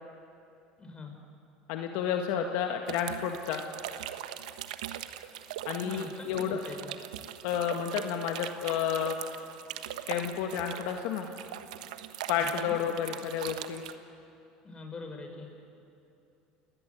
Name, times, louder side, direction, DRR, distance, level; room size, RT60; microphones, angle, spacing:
voice 1, 0.8-1.2 5.8-6.9 12.4-12.7 14.6-15.5, left 2 dB, 25° left, 3 dB, 6.2 m, -43 dB
voice 2, 1.7-3.6 5.7-6.6 7.4-9.2 10.1-11.3 12.3-13.8, left 8 dB, 70° left, 4 dB, 1.7 m, -31 dB
sound 1, 2.9-13.9, right 11 dB, 85° right, 1.2 m, -41 dB
29.0 x 20.0 x 8.3 m, 2.7 s
hypercardioid pair, 85°, 4 cm